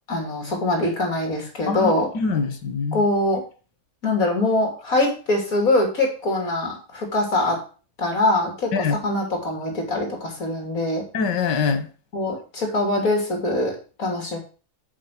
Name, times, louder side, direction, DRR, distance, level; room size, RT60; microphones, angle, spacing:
voice 1, 0.1-2.1 2.9-3.4 4.0-7.6 8.0-11.0 12.1-14.4, left 2 dB, 55° left, 3.8 m, -23 dB
voice 2, 1.7-3.0 8.7-9.0 11.1-11.9, left 5 dB, 85° left, 2.0 m, -24 dB
7.5 x 7.0 x 6.1 m
omnidirectional pair, 1.8 m